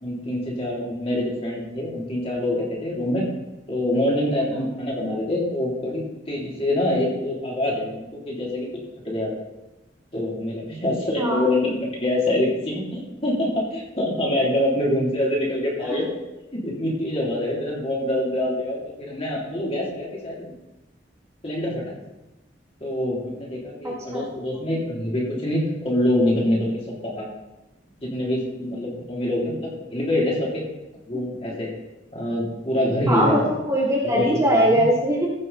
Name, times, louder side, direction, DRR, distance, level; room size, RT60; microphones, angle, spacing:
voice 1, 0.0-3.3 3.7-8.7 9.0-9.4 10.1-16.1 16.5-20.5 21.4-22.0 22.8-27.2 28.0-30.6 31.1-31.7 32.1-33.5 34.0-34.8, left 1 dB, 35° left, -4 dB, 3.2 m, -25 dB
voice 2, 23.8-24.2 31.1-31.5 33.1-35.3, equal, 15° right, -3 dB, 1.6 m, -22 dB
15.0 x 6.6 x 4.1 m, 1.0 s
head